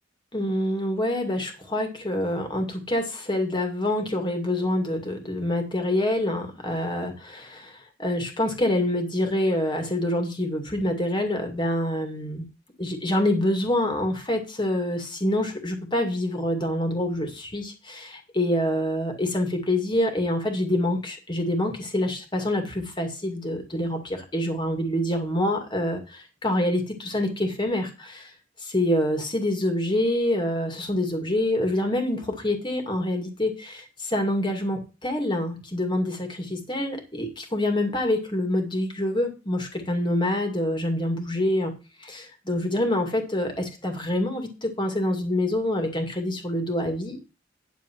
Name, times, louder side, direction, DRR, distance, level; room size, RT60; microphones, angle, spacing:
voice 1, 0.3-12.4 12.8-28.3 28.6-41.7 42.0-47.2, left 1 dB, 25° left, 4 dB, 2.1 m, -26 dB
10.0 x 7.1 x 4.5 m, 0.31 s
head